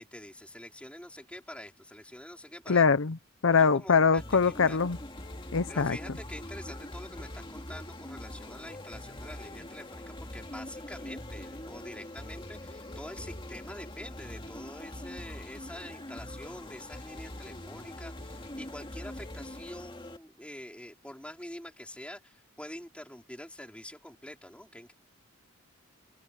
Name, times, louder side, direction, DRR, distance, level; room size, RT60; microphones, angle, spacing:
voice 1, 0.0-2.9 3.5-4.8 5.7-24.9, left 1 dB, 5° left, 4.1 m, -46 dB
voice 2, 2.7-3.2 3.4-5.0 5.5-6.0, left 5 dB, 65° left, 0.7 m, -23 dB
sound 1, 4.2-20.2, left 1 dB, 25° left, 2.2 m, -43 dB
head